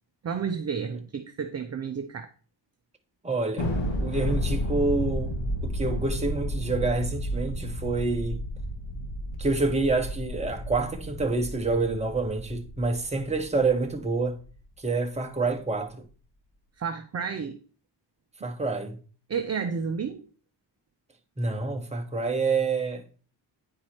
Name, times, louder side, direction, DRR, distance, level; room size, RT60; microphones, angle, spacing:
voice 1, 0.2-2.3 16.8-17.6 18.4-18.5 19.3-20.2, right 6 dB, 35° right, 0.6 m, -31 dB
voice 2, 3.2-3.7 4.0-5.3 5.6-8.4 9.4-14.4 14.8-16.0 18.4-19.0 21.4-23.0, right 3 dB, 15° right, 1.0 m, -27 dB
Thunder, 3.6-14.2, equal, 70° left, 2.1 m, -32 dB
9.6 x 4.7 x 4.4 m
wide cardioid pair, 160°, 46 cm